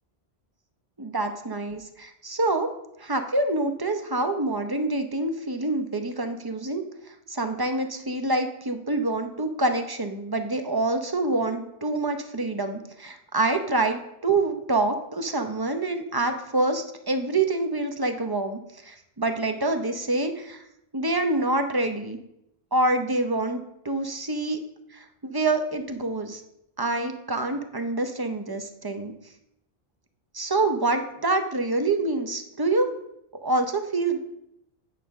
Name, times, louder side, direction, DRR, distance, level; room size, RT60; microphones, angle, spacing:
voice 1, 1.0-2.7 3.0-20.6 20.9-22.2 22.7-24.6 24.9-26.4 26.8-29.1 30.3-32.9 33.4-34.2, right 2 dB, 25° right, 7 dB, 0.7 m, -26 dB
9.1 x 4.2 x 6.3 m, 0.80 s
omnidirectional pair, 1.1 m